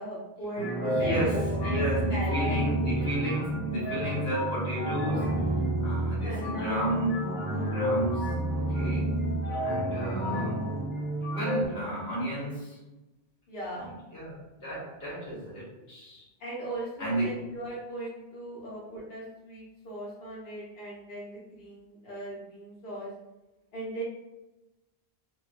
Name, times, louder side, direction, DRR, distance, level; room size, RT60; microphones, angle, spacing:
voice 1, 0.0-2.9 6.2-6.8 13.5-13.9 16.4-23.1 23.7-24.0, right 1 dB, 65° left, -7 dB, 1.1 m, -38 dB
sound 1, 0.6-11.7, right 1 dB, 10° left, 0.6 m, -30 dB
voice 2, 0.8-5.4 5.8-9.1 9.6-10.9 11.3-12.8 13.7-13.9 14.1-16.2 17.0-17.5 18.7-19.1, right 1 dB, 90° left, -7 dB, 1.5 m, -33 dB
3.1 x 2.6 x 2.5 m, 1.0 s
omnidirectional pair, 1.1 m